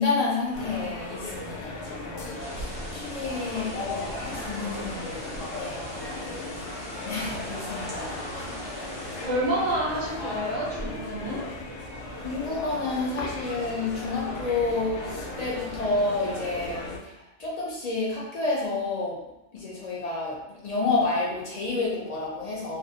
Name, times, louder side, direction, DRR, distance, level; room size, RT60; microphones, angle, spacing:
voice 1, 0.0-5.9 6.2-6.6 7.0-8.5 12.2-19.2 19.5-22.8, left 3 dB, 50° left, -5 dB, 0.5 m, -30 dB
sound 1, 0.5-17.0, left 2 dB, 85° left, 0.9 m, -36 dB
sound 2, 2.4-9.3, equal, 10° right, 0.3 m, -41 dB
voice 2, 9.2-11.4, right 1 dB, 45° right, -5 dB, 0.7 m, -28 dB
2.5 x 2.0 x 2.6 m, 0.90 s
omnidirectional pair, 1.2 m